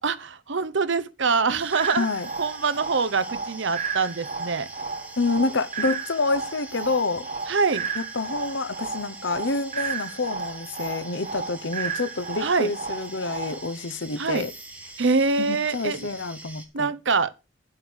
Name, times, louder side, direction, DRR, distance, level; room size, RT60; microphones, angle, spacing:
voice 1, 0.0-2.1 2.4-4.7 7.5-7.9 12.4-12.7 14.2-14.5 15.0-16.1 16.7-17.3, right 4 dB, 65° right, 0.9 m, -24 dB
sound 1, 1.6-16.7, right 2 dB, 5° right, 1.9 m, -44 dB
sound 2, 1.7-13.7, right 5 dB, 35° right, 1.1 m, -33 dB
voice 2, 2.0-2.3 5.2-7.3 8.0-14.5 15.4-16.9, left 3 dB, 70° left, 1.0 m, -28 dB
9.7 x 7.8 x 6.3 m
head